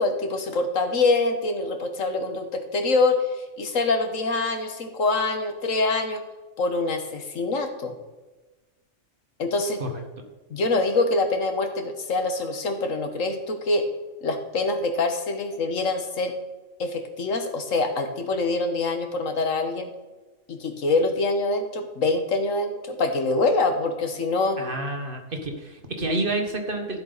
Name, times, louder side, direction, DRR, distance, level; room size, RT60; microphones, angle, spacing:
voice 1, 0.0-6.2 6.6-7.9 9.4-9.8 10.5-13.8 14.2-16.3 16.8-19.9 20.5-24.6, left 3 dB, 85° left, 6 dB, 1.7 m, -25 dB
voice 2, 24.6-27.0, right 2 dB, 45° right, 4 dB, 1.7 m, -29 dB
13.5 x 7.8 x 4.1 m, 1.2 s
omnidirectional pair, 1.3 m